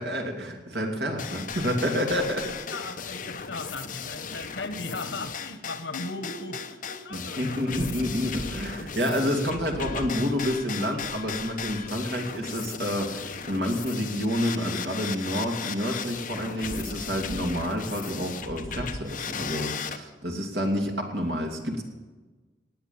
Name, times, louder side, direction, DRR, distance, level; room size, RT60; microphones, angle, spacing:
voice 1, 0.0-2.8 7.1-21.8, equal, 65° right, 2 dB, 2.7 m, -29 dB
sound 1, 1.2-20.0, left 6 dB, 50° left, 0.9 m, -36 dB
voice 2, 2.7-7.7, left 2 dB, 90° left, 10 dB, 1.4 m, -37 dB
18.5 x 9.0 x 7.2 m, 1.3 s
head